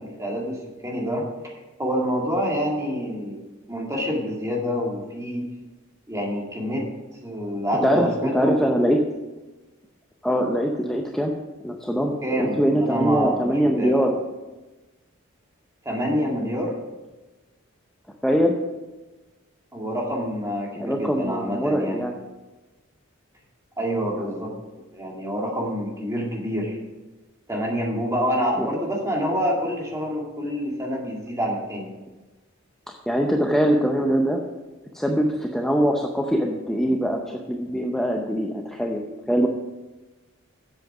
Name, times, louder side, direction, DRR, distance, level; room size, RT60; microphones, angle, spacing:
voice 1, 0.0-3.4 3.7-5.5 6.1-6.8 7.2-8.6 12.2-14.1 15.8-16.7 19.7-22.0 23.8-24.5 24.9-26.8 27.5-31.9, equal, 15° right, -2 dB, 2.1 m, -27 dB
voice 2, 7.8-9.0 10.2-11.3 11.6-14.2 18.2-18.6 20.8-22.1 24.2-24.5 28.6-28.8 33.1-34.4 34.9-39.0 39.3-39.5, equal, 5° left, 1 dB, 0.6 m, -22 dB
7.8 x 7.7 x 5.9 m, 1.2 s
head